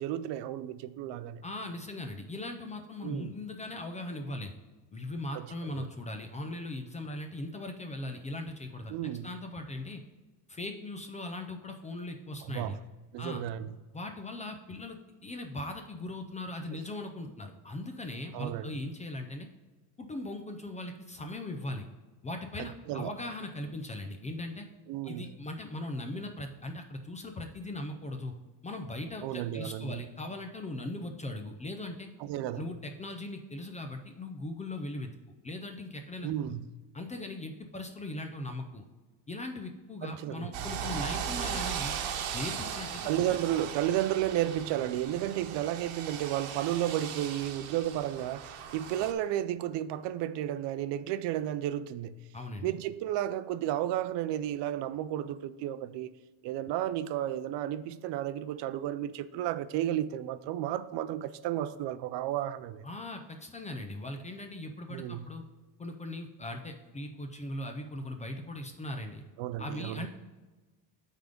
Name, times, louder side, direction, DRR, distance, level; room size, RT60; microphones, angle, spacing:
voice 1, 0.0-1.4 3.0-3.3 5.3-5.9 8.9-9.3 12.5-12.8 13.1-13.7 18.3-18.8 22.6-23.1 24.9-25.3 29.2-30.0 32.2-32.7 36.2-36.6 40.0-40.5 43.0-52.2 52.6-56.1 56.4-62.8 64.9-65.3 69.4-70.1, right 12 dB, 65° right, 0.5 m, -33 dB
voice 2, 1.4-4.5 4.9-10.0 10.5-12.8 13.2-13.4 13.9-19.5 20.0-21.9 22.2-24.7 25.0-28.3 28.6-32.1 32.6-35.1 35.4-36.5 36.9-38.8 39.3-41.9 42.3-43.4 52.3-52.7 62.8-65.4 65.8-69.2 69.6-70.1, left 1 dB, 15° left, 0.4 m, -39 dB
sound 1, 40.5-49.1, right 8 dB, 80° right, 1.1 m, -38 dB
9.3 x 3.7 x 5.1 m
cardioid pair, 160°, 46 cm